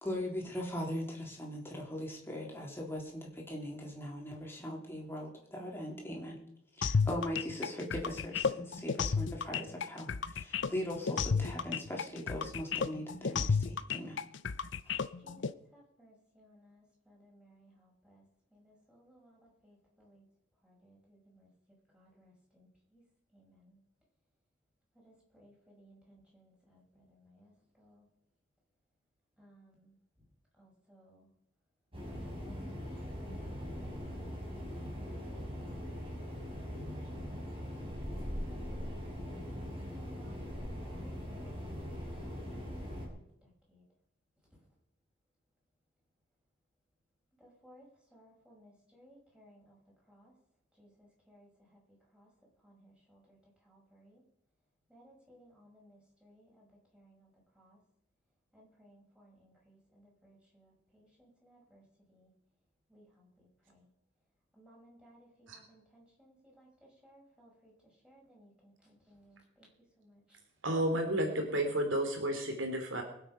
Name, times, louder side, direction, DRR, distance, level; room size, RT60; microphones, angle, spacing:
voice 1, 0.0-6.4 6.8-14.2, left 1 dB, 10° left, -1 dB, 3.6 m, -40 dB
sound 1, 6.8-15.5, left 5 dB, 65° left, 0.6 m, -32 dB
voice 2, 15.2-18.2 18.5-20.2 20.6-21.5 21.9-23.0 23.3-23.8 24.9-28.0 29.4-30.0 30.6-31.3 32.1-37.6 40.1-43.8 47.4-49.8 50.1-50.3 50.8-51.8 52.1-52.3 52.6-53.4 53.6-54.2 54.9-56.7 56.9-57.8 58.5-61.8 62.1-62.3 62.9-63.9 64.5-67.7 68.0-69.7 70.0-70.4, equal, 5° right, -4 dB, 6.0 m, -62 dB
sound 2, 31.9-43.1, equal, 30° right, 5.1 m, -41 dB
voice 3, 70.6-73.0, right 1 dB, 75° right, 4 dB, 3.1 m, -31 dB
23.5 x 8.1 x 5.7 m, 0.76 s
head